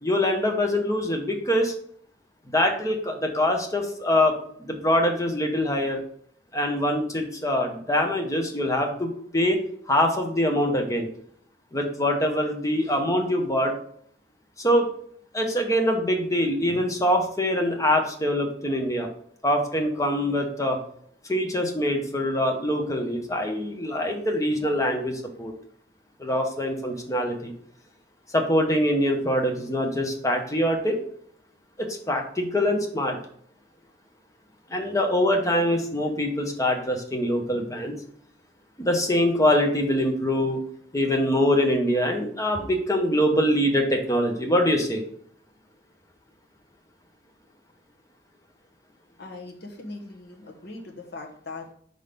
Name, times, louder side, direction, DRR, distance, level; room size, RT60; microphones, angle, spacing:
voice 1, 0.0-1.7 2.5-6.0 6.5-9.6 9.9-11.1 11.7-13.7 14.6-14.9 15.3-19.1 19.4-20.8 21.3-25.5 26.2-27.5 28.3-31.0 31.8-33.2 34.7-37.9 38.8-40.6 40.9-45.0, left 1 dB, 20° left, 3 dB, 1.0 m, -24 dB
voice 2, 49.2-51.7, left 2 dB, 60° left, 2 dB, 1.2 m, -40 dB
5.4 x 3.9 x 5.1 m, 0.63 s
head